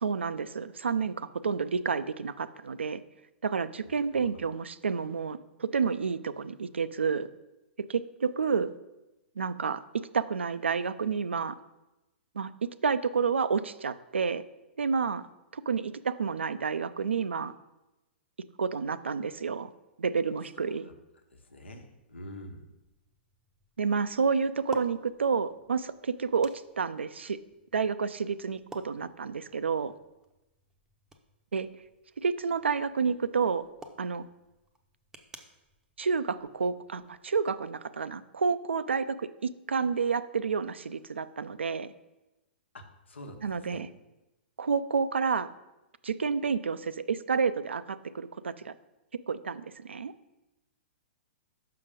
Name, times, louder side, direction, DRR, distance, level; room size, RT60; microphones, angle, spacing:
voice 1, 0.0-3.0 3.4-7.3 7.9-8.7 9.4-11.6 12.3-14.4 14.8-15.3 15.5-17.5 18.6-19.7 20.0-20.9 23.8-26.5 26.8-27.4 27.7-29.9 31.5-31.7 32.2-33.6 34.0-34.2 36.0-41.9 43.4-43.9 44.6-45.5 46.0-48.7 49.3-50.1, right 5 dB, 80° right, 14 dB, 0.4 m, -30 dB
voice 2, 3.8-4.4 20.8-20.9 21.3-22.7 42.7-43.8, left 1 dB, 80° left, 5 dB, 1.2 m, -46 dB
sound 1, 22.0-37.2, right 2 dB, 10° right, 0.6 m, -53 dB
5.9 x 5.7 x 5.1 m, 1.0 s
figure-of-eight pair, 115°, 6 cm